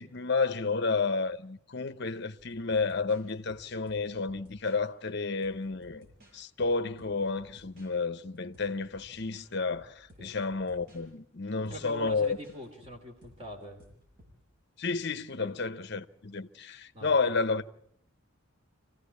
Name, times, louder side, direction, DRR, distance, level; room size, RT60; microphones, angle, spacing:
voice 1, 0.0-6.1 6.3-12.4 14.8-17.7, left 4 dB, 50° left, 0.8 m, -31 dB
sound 1, 2.4-4.9 5.4-7.9 8.4-11.0 11.7-14.4, equal, 45° right, 7.4 m, -57 dB
voice 2, 11.6-13.8 15.4-15.5 16.9-17.2, equal, 30° right, 3.0 m, -43 dB
26.5 x 16.0 x 8.4 m
head